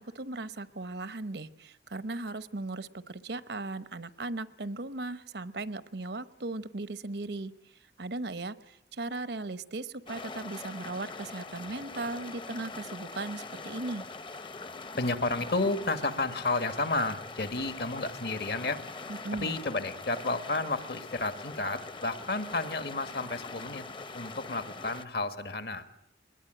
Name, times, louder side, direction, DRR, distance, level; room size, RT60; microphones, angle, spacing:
voice 1, 0.0-7.5 8.0-8.6 8.9-14.0 19.1-19.6, right 2 dB, 70° right, 15 dB, 0.9 m, -37 dB
sound 1, 10.1-25.0, left 3 dB, 25° left, 0.8 m, -43 dB
voice 2, 15.0-18.8 19.4-23.8 24.1-25.9, left 2 dB, 65° left, 10 dB, 1.7 m, -31 dB
22.0 x 20.5 x 8.9 m, 0.82 s
head